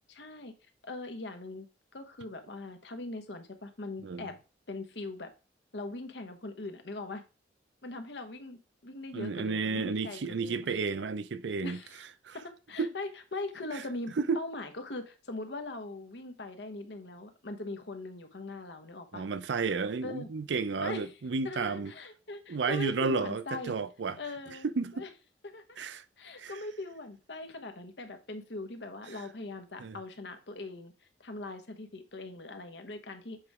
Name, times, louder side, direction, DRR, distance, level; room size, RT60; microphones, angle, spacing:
voice 1, 0.1-0.5 0.8-1.7 1.9-4.4 4.7-5.3 5.7-7.2 7.8-10.6 11.6-12.0 12.3-19.2 20.0-20.3 20.8-21.2 21.4-23.8 24.2-24.7 24.9-25.1 25.4-25.8 26.2-30.9 31.2-33.4, left 2 dB, 70° left, 1.1 m, -41 dB
voice 2, 9.1-11.8 12.2-12.4 12.8-12.9 14.3-14.4 19.1-21.9 22.5-24.2 24.6-25.0 25.8-26.0 26.4-26.5 29.8-30.0, right 4 dB, 75° right, 0.5 m, -32 dB
7.8 x 3.1 x 4.7 m
head